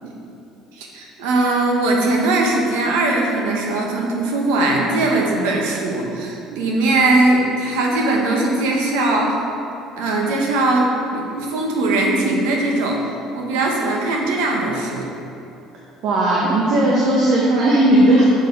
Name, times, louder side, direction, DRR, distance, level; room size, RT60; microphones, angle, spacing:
voice 1, 0.8-9.3 10.0-13.0 13.3-15.1, right 2 dB, 90° right, -1 dB, 1.0 m, -20 dB
voice 2, 16.0-18.3, right 1 dB, 65° right, -5 dB, 1.1 m, -16 dB
6.4 x 4.1 x 5.1 m, 2.7 s
supercardioid pair, 105°, 0 cm